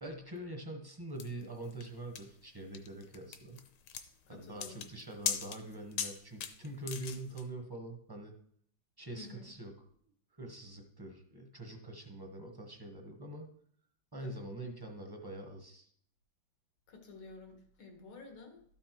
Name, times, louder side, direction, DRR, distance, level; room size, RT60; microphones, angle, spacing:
voice 1, 0.0-3.6 4.3-8.4 9.0-9.7 10.4-13.5 14.1-15.9, right 1 dB, 25° right, 3 dB, 0.5 m, -44 dB
sound 1, 1.2-7.4, left 8 dB, 70° left, 1.4 m, -40 dB
voice 2, 4.3-4.8 9.2-9.5 14.2-14.3 16.9-18.6, left 3 dB, 90° left, 3 dB, 2.4 m, -51 dB
12.5 x 5.4 x 4.5 m, 0.63 s
omnidirectional pair, 2.2 m